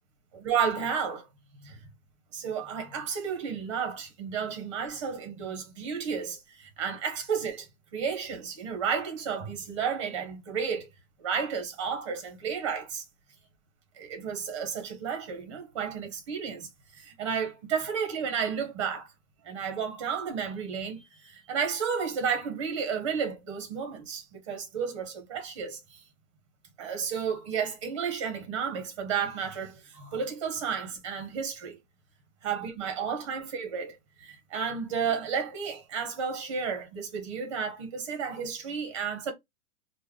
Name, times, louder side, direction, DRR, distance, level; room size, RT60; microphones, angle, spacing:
voice 1, 0.3-1.3 1.6-1.8 2.3-10.9 11.2-13.0 14.0-19.1 19.4-26.0 26.8-31.8 32.4-39.3, right 6 dB, 20° right, 0.6 m, -32 dB
3.2 x 2.1 x 3.4 m
hypercardioid pair, 170°, 42 cm